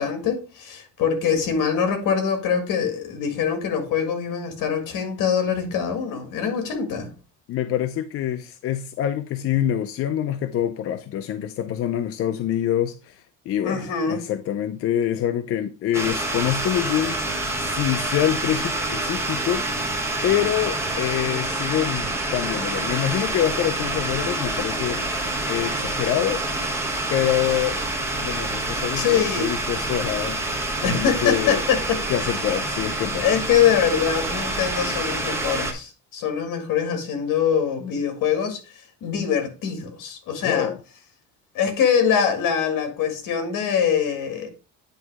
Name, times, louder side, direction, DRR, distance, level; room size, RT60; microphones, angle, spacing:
voice 1, 0.0-7.1 13.6-14.2 29.0-29.5 30.8-32.0 33.2-38.6 39.0-40.7 41.5-44.5, left 7 dB, 70° left, 2.0 m, -23 dB
voice 2, 7.5-19.7 20.2-25.2 25.5-26.4 27.1-27.8 28.2-30.4 30.8-31.6 32.1-33.3 40.4-40.8, left 11 dB, 45° left, 0.5 m, -26 dB
sound 1, 15.9-35.7, right 2 dB, 10° right, 1.0 m, -27 dB
9.1 x 3.0 x 4.7 m
cardioid pair, 145°, 33 cm